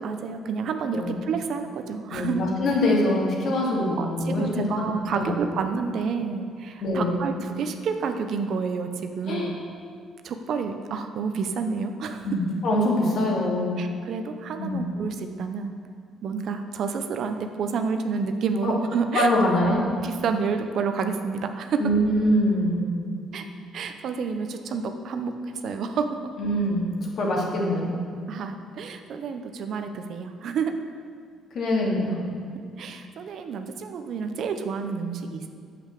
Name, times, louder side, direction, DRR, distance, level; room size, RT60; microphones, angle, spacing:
voice 1, 0.0-2.4 4.0-9.6 10.2-12.3 13.8-15.7 16.2-19.3 19.7-19.8 20.0-21.8 23.3-23.5 23.7-26.3 28.3-30.8 32.5-35.5, right 5 dB, 60° right, 7 dB, 0.8 m, -29 dB
voice 2, 2.1-5.3 6.8-7.2 9.3-9.5 12.2-13.8 14.6-14.8 18.6-18.7 19.1-19.8 21.8-22.9 26.4-28.0 31.5-32.2, left 1 dB, 55° left, -2 dB, 2.6 m, -24 dB
9.2 x 8.0 x 6.7 m, 2.2 s
cardioid pair, 125°, 0 cm